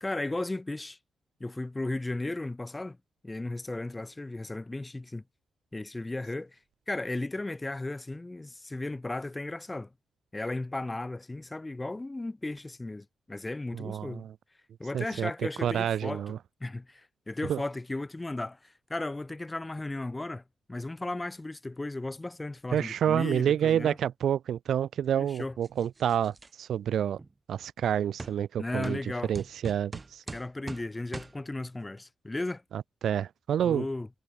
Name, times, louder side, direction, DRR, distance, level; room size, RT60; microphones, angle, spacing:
voice 1, 0.0-1.0 1.4-3.0 3.2-5.2 5.7-6.6 6.9-9.9 10.3-14.3 14.8-20.4 20.7-24.0 25.2-25.6 28.6-29.3 30.3-32.6 33.6-34.1, left 2 dB, 15° left, 1.3 m, -35 dB
voice 2, 13.7-14.3 14.9-15.3 15.6-16.4 17.5-17.6 22.7-27.2 27.5-29.0 29.3-30.2 32.7-33.8, right 9 dB, 75° right, 0.3 m, -28 dB
sound 1, 25.6-26.5 27.2-27.3 28.2-28.4 28.8-29.0 29.3-30.9 31.1-31.3, right 3 dB, 20° right, 0.8 m, -41 dB
wide cardioid pair, 135°, 0 cm